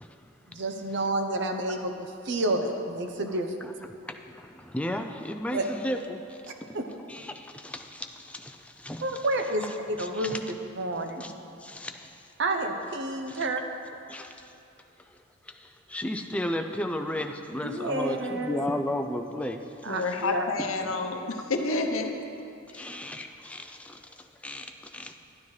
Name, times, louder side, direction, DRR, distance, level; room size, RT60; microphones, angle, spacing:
voice 1, 0.5-3.7 5.5-5.6 6.7-6.9 9.0-10.3 10.7-11.2 12.4-13.6 17.6-18.6 19.8-20.5, right 2 dB, 60° right, 5 dB, 0.7 m, -29 dB
voice 2, 4.0-6.8 7.1-9.0 10.0-10.4 11.2-11.3 11.6-12.3 13.3-13.4 14.1-14.5 15.1-15.2 15.4-19.6 22.7-25.1, left 1 dB, 5° left, 5 dB, 0.4 m, -34 dB
voice 3, 19.9-22.2 22.7-22.9, left 3 dB, 85° left, 5 dB, 0.8 m, -29 dB
11.5 x 9.6 x 3.2 m, 2.6 s
head